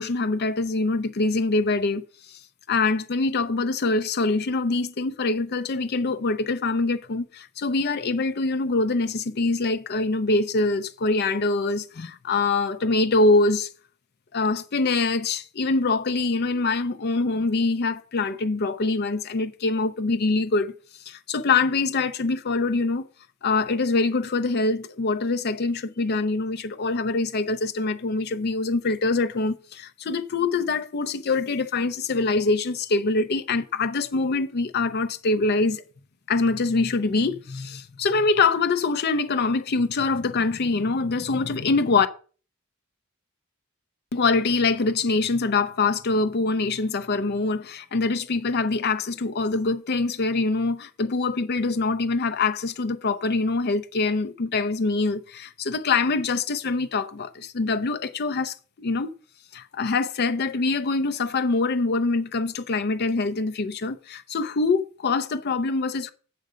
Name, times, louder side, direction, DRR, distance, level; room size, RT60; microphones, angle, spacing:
voice 1, 0.0-2.4 2.7-13.7 14.3-20.7 21.1-23.1 23.4-35.8 36.3-42.1 44.1-59.1 59.5-66.1, left 3 dB, 50° left, 0.5 m, -24 dB
7.7 x 6.6 x 5.0 m
head